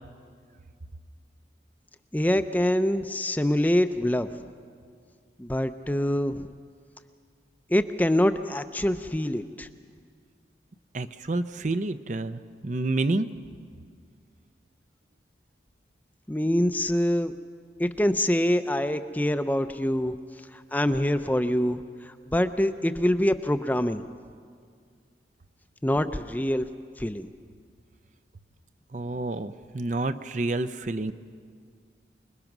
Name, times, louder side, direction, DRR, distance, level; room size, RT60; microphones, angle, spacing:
voice 1, 2.1-4.3 5.4-6.5 7.7-9.7 16.3-17.3 17.8-20.2 20.5-24.0 25.8-26.7 27.0-27.3, left 1 dB, 10° left, 10 dB, 0.5 m, -25 dB
voice 2, 10.9-13.3 28.9-31.1, right 2 dB, 45° right, 11 dB, 0.6 m, -29 dB
26.5 x 20.5 x 6.0 m, 2.1 s
head